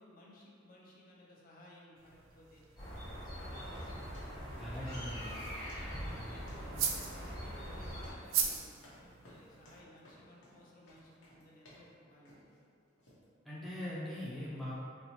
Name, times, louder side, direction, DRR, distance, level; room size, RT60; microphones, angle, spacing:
voice 1, 0.0-2.6 3.4-4.3 4.8-5.3 6.0-12.6, left 1 dB, 45° left, -4 dB, 0.6 m, -57 dB
sound 1, 2.0-9.8, right 7 dB, 85° right, 0.4 m, -41 dB
sound 2, 2.8-8.1, equal, 25° left, 1.1 m, -43 dB
sound 3, 3.8-11.9 12.3-12.6 13.0-13.2, equal, 90° left, 0.9 m, -57 dB
voice 2, 4.6-5.2 13.4-14.7, left 1 dB, ahead, -8 dB, 0.4 m, -41 dB
4.2 x 2.0 x 2.8 m, 2.3 s
head